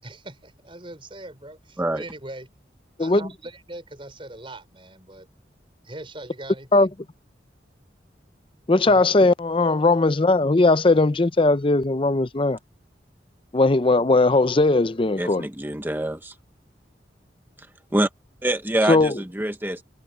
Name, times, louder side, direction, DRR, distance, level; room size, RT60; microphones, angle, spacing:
voice 1, 0.0-2.5 3.0-5.3 5.8-6.9 8.8-9.0, right 2 dB, 30° right, 5.0 m, -41 dB
voice 2, 8.7-12.6 13.5-15.4 18.9-19.1, left 2 dB, 30° left, 0.6 m, -18 dB
voice 3, 15.2-16.3 17.9-18.1 18.4-19.8, right 1 dB, 10° right, 0.9 m, -25 dB
head